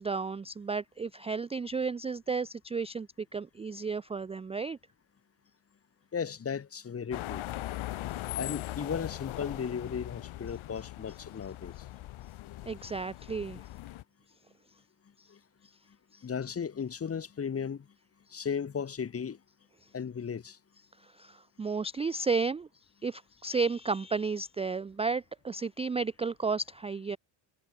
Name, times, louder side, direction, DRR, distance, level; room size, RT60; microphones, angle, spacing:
voice 1, 0.0-4.8 12.7-13.6 15.2-15.3 16.1-16.2 21.0-22.7 23.0-27.2, right 4 dB, 15° right, 0.3 m, -33 dB
voice 2, 6.1-7.5 8.4-11.7 15.3-15.4 16.2-17.8 18.3-19.4 19.9-20.6, left 7 dB, 30° left, 2.6 m, -35 dB
sound 1, 7.1-14.0, left 15 dB, 80° left, 4.1 m, -40 dB
cardioid pair, 165°, 48 cm